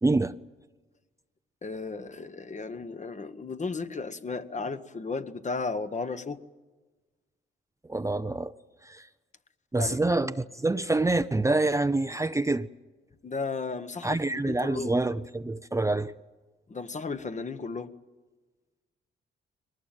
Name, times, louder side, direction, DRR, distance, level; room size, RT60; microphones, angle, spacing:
voice 1, 0.0-0.4 7.9-8.5 8.8-9.1 9.7-12.7 14.0-16.1, right 2 dB, 15° right, 0.7 m, -26 dB
voice 2, 1.6-6.4 9.8-10.0 13.2-15.0 16.7-17.9, left 4 dB, 35° left, 1.3 m, -34 dB
22.5 x 19.0 x 9.1 m
cardioid pair, 70°, 21 cm